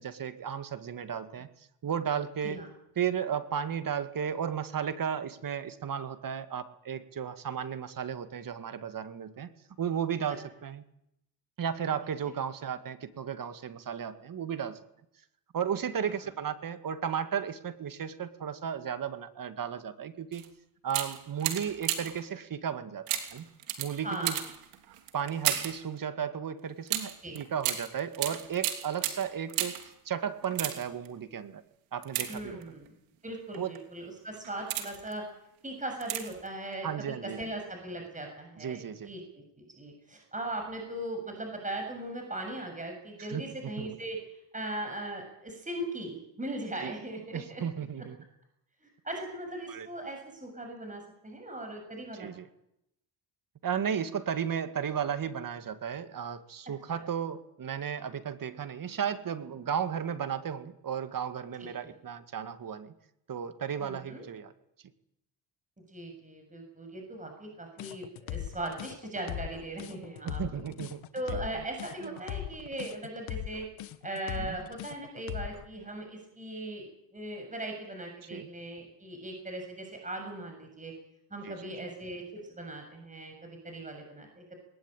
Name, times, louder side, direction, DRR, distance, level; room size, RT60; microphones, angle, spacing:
voice 1, 0.0-1.5 1.8-2.6 3.0-9.5 9.8-10.8 11.6-14.8 15.5-20.5 20.8-23.5 23.8-24.3 25.1-29.8 30.1-31.6 31.9-32.6 33.6-33.7 36.8-37.4 38.6-39.1 43.3-43.9 46.8-46.9 47.3-48.2 49.7-49.9 52.2-52.5 53.6-62.9 63.3-64.5 70.2-71.0 72.0-72.1 74.4-74.6 78.3-78.5 81.4-81.7, right 8 dB, 40° right, 10 dB, 2.0 m, -34 dB
sound 1, 20.3-20.5 20.9-22.3 23.1-25.8 26.9-29.9 30.4-31.1 32.0-32.9 33.5-33.8 34.3-35.1 36.0-36.5 36.7-36.8, right 12 dB, 90° right, 3.3 m, -34 dB
voice 2, 24.0-24.4 27.2-27.4 32.3-32.9 33.2-35.2 35.6-44.2 44.5-47.6 48.8-52.3 56.9-57.0 61.8-61.9 63.8-64.2 65.9-70.4 71.1-73.7 74.0-80.9 81.3-84.5, right 1 dB, 15° right, 3 dB, 7.3 m, -39 dB
Alien Combing Her Thorns to the Beat, 67.8-75.7, left 12 dB, 70° left, 1.7 m, -39 dB
20.0 x 19.5 x 9.1 m, 0.80 s
supercardioid pair, 80°, 49 cm